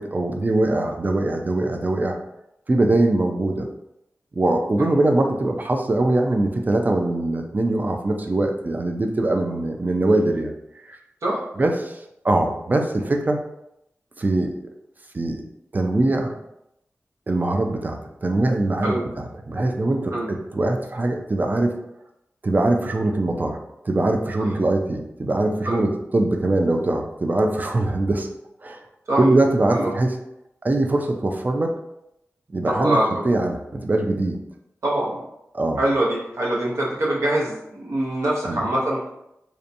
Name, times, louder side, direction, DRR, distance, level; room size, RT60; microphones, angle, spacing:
voice 1, 0.0-2.2 2.7-3.7 4.3-10.5 10.9-11.0 11.6-12.0 12.2-13.4 14.2-14.5 15.1-15.4 15.7-16.3 17.3-21.8 22.4-23.6 23.8-28.3 28.6-28.8 29.2-30.1 30.6-31.7 32.5-33.0 33.2-34.4 35.5-35.8 38.4-38.6, right 2 dB, 35° right, 3 dB, 0.4 m, -22 dB
voice 2, 32.6-33.3 34.8-35.2 35.8-39.0, right 1 dB, 85° right, -5 dB, 0.8 m, -23 dB
2.8 x 2.2 x 2.6 m, 0.82 s
wide cardioid pair, 75°, 5 cm